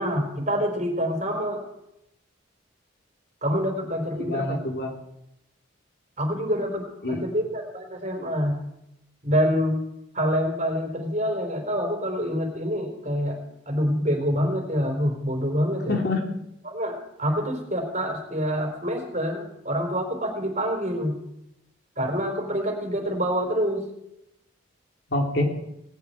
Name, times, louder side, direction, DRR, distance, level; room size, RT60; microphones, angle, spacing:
voice 1, 0.0-1.6 3.4-4.6 6.2-8.6 9.2-9.8 10.1-13.4 13.7-16.0 16.6-21.2 22.0-23.9, equal, 35° right, 2 dB, 4.2 m, -26 dB
voice 2, 4.1-5.0 7.0-7.2 15.9-16.2 25.1-25.4, left 2 dB, 55° left, 1 dB, 3.2 m, -26 dB
18.5 x 8.1 x 9.5 m, 0.82 s
head